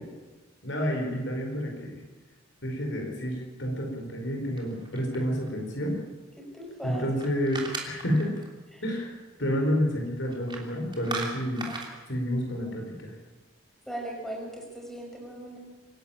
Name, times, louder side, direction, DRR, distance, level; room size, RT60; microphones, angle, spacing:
voice 1, 0.6-2.0 2.6-6.0 6.8-8.3 8.8-11.7 12.1-13.1, equal, 60° left, 2 dB, 4.6 m, -29 dB
sound 1, 4.6-5.5 6.9-8.5 10.3-10.7 10.9-11.9, right 3 dB, 20° right, 3.1 m, -37 dB
voice 2, 6.4-7.1 11.7-11.8 13.9-15.6, right 1 dB, ahead, -1 dB, 5.6 m, -38 dB
25.5 x 11.5 x 8.8 m, 1.2 s
head